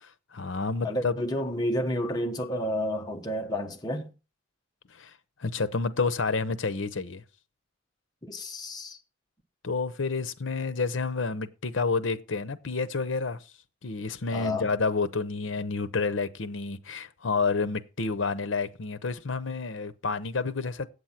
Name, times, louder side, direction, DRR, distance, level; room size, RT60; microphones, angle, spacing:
voice 1, 0.0-1.2 5.0-5.1 5.4-7.2 9.6-13.4 13.8-20.9, left 4 dB, 75° left, 0.8 m, -29 dB
voice 2, 0.8-4.1 8.2-9.0 14.3-14.7, left 1 dB, 20° left, 1.0 m, -30 dB
8.3 x 7.9 x 5.8 m
head